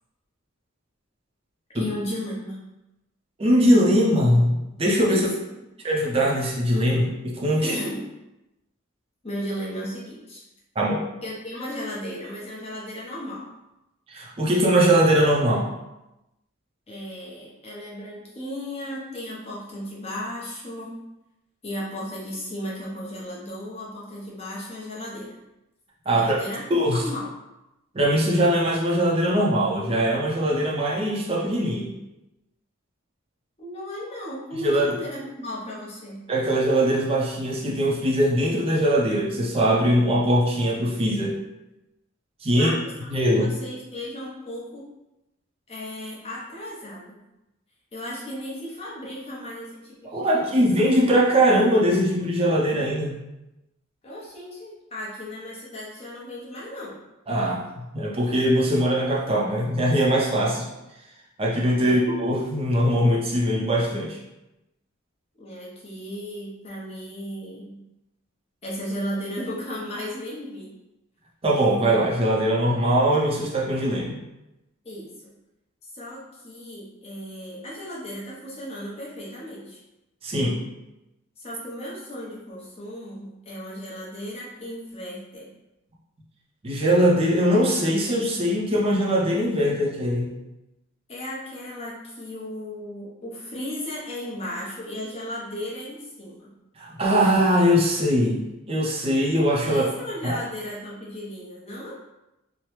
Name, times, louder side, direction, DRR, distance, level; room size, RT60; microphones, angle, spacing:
voice 1, 1.7-2.6 5.1-5.6 7.6-8.1 9.2-10.4 11.2-13.5 16.9-21.0 21.6-25.4 26.1-27.3 33.6-36.3 42.5-44.9 45.7-47.2 47.9-50.6 54.0-57.0 61.8-62.0 65.4-67.8 68.6-70.7 74.8-75.4 75.8-79.8 81.4-85.5 91.1-96.5 99.6-101.9, equal, 30° left, -5 dB, 0.7 m, -35 dB
voice 2, 3.4-5.3 5.8-7.7 10.8-11.0 14.1-15.7 26.1-26.4 26.7-27.0 27.9-31.9 34.6-34.9 36.3-41.4 42.4-42.7 43.1-43.5 50.1-53.2 57.3-60.7 61.4-64.2 71.4-74.2 80.2-80.6 86.6-90.4 96.8-99.8 100.2-100.4, equal, 30° right, -2 dB, 0.4 m, -21 dB
2.9 x 2.0 x 3.1 m, 0.95 s
head